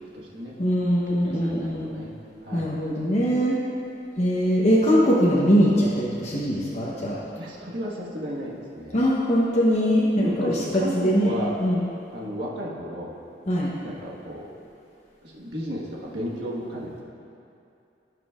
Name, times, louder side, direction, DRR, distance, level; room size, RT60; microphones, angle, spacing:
voice 1, 0.6-1.9 2.5-3.6 4.2-7.2 8.9-11.3 11.6-11.8 13.5-13.7, equal, 40° left, -6 dB, 0.9 m, -22 dB
voice 2, 1.2-2.1 2.4-2.7 7.3-9.1 10.1-11.5 12.1-13.1 13.8-14.5 15.2-17.0, equal, 70° right, -5 dB, 1.5 m, -33 dB
16.0 x 6.0 x 2.4 m, 2.7 s
head